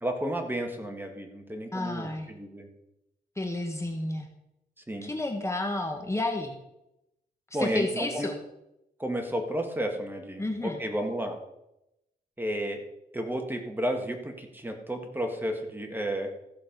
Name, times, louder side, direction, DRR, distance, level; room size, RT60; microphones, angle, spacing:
voice 1, 0.0-2.7 4.9-5.1 7.5-8.3 9.0-11.4 12.4-12.8 13.1-16.3, equal, 10° right, 3 dB, 1.9 m, -32 dB
voice 2, 1.7-2.3 3.4-4.3 5.0-6.6 7.6-8.4 10.4-10.8, left 2 dB, 15° left, 3 dB, 1.6 m, -31 dB
15.0 x 6.8 x 5.3 m, 0.86 s
cardioid pair, 90°, 16 cm